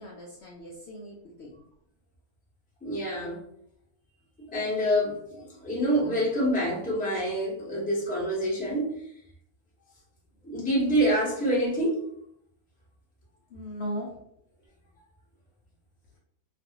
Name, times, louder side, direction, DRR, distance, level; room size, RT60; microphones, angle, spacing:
voice 1, 0.0-1.6 13.5-14.1, equal, 85° left, -3 dB, 0.5 m, -38 dB
voice 2, 2.8-3.4 4.5-8.9 10.4-12.0, equal, 10° left, -5 dB, 0.4 m, -26 dB
2.6 x 2.4 x 2.7 m, 0.72 s
omnidirectional pair, 1.7 m